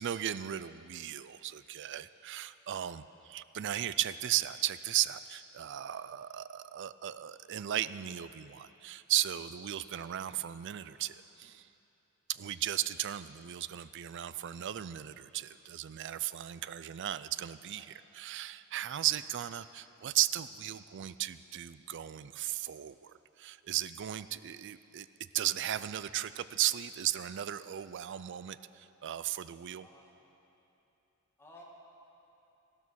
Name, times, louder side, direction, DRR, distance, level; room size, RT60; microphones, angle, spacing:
voice 1, 0.0-11.7 12.3-17.9 18.1-28.6 29.0-29.9, right 12 dB, 55° right, 15 dB, 0.4 m, -36 dB
voice 2, 28.1-28.5 29.8-30.2 31.4-31.6, left 1 dB, 10° left, -3 dB, 2.1 m, -57 dB
15.5 x 12.5 x 6.3 m, 2.9 s
head